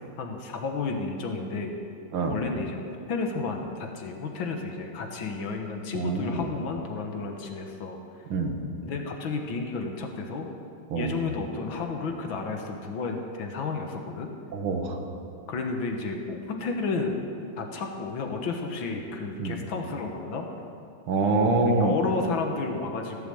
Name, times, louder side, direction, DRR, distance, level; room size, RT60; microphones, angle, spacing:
voice 1, 0.2-1.8 2.3-2.8 3.1-8.0 8.8-10.5 10.9-14.3 15.5-17.2 17.6-20.5 21.6-23.3, left 4 dB, 70° left, 3 dB, 2.0 m, -32 dB
voice 2, 5.9-6.4 8.3-8.5 10.9-11.1 14.5-15.0 19.4-19.6 21.1-21.9, right 3 dB, 85° right, 4 dB, 2.2 m, -25 dB
16.0 x 7.7 x 7.7 m, 2.6 s
omnidirectional pair, 2.3 m